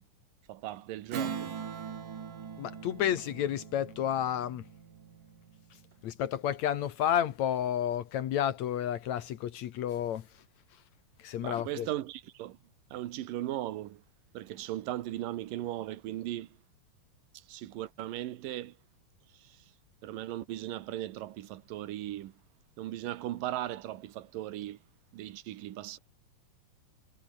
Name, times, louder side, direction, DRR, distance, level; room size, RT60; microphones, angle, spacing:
voice 1, 0.5-1.5 11.3-12.6 12.9-14.0 14.3-16.6 17.3-18.8 19.3-19.7 20.0-22.4 22.8-24.8 25.1-26.0, right 14 dB, 85° right, 2.9 m, -38 dB
Strum, 1.1-6.0, right 7 dB, 70° right, 4.7 m, -41 dB
voice 2, 2.6-4.6 6.0-10.3 11.2-11.9, left 10 dB, 65° left, 2.2 m, -31 dB
omnidirectional pair, 3.8 m